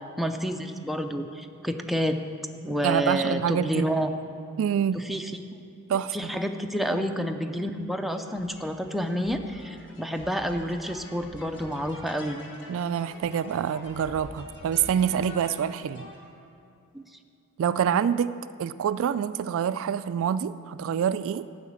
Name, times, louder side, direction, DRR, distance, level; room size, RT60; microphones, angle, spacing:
voice 1, 0.2-2.2 2.6-4.1 5.1-5.2 6.1-12.4 16.9-17.0, equal, ahead, 4 dB, 0.5 m, -29 dB
voice 2, 2.8-3.9 4.6-5.0 5.9-6.3 12.7-16.1 17.6-18.3 18.6-21.5, right 8 dB, 65° right, 14 dB, 0.3 m, -26 dB
sound 1, 8.1-16.3, left 1 dB, 55° left, 2.0 m, -45 dB
12.0 x 5.9 x 8.7 m, 2.6 s
head